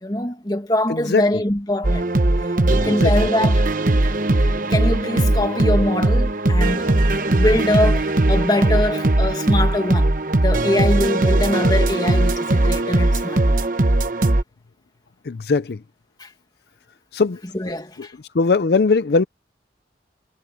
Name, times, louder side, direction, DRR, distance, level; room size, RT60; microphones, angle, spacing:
voice 1, 0.0-2.1 2.7-3.7 4.4-7.0 7.3-13.7 16.2-16.3 17.4-18.1, left 1 dB, 25° left, 1.9 m, -23 dB
sound 1, 1.8-14.4, right 2 dB, 50° right, 1.0 m, -19 dB
voice 2, 15.3-15.8 17.1-17.4 18.4-19.2, left 4 dB, 65° left, 0.5 m, -19 dB
head